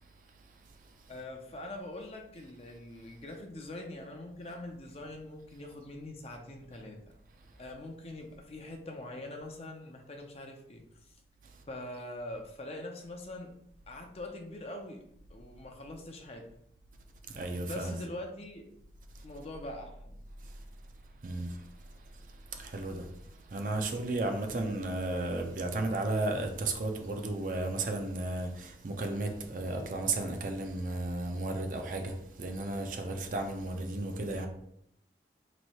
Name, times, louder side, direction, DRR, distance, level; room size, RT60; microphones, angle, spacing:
voice 1, 1.1-7.0 7.6-11.1 11.7-13.5 13.9-15.0 15.3-16.5 17.7-18.7 19.2-20.2, left 1 dB, 35° left, 0.5 m, -43 dB
voice 2, 17.3-18.0 19.1-19.2 20.4-20.6 21.2-21.7 22.1-22.2 22.5-23.1 23.5-34.5, right 2 dB, 45° right, 0.5 m, -34 dB
3.1 x 2.6 x 4.2 m
head